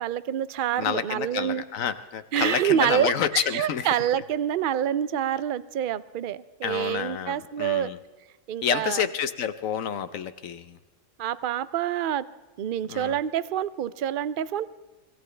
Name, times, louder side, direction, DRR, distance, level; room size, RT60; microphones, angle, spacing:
voice 1, 0.0-1.6 2.3-7.9 8.5-9.0 11.2-12.3 12.6-14.7, right 10 dB, 55° right, 16 dB, 0.6 m, -27 dB
voice 2, 0.8-3.9 6.6-8.0 8.6-10.8 12.9-13.2, left 8 dB, 75° left, 11 dB, 1.2 m, -29 dB
Vehicle horn car horn honking, 2.4-3.2, right 1 dB, 35° right, 1.2 m, -36 dB
25.5 x 16.5 x 3.3 m, 1.2 s
omnidirectional pair, 1.4 m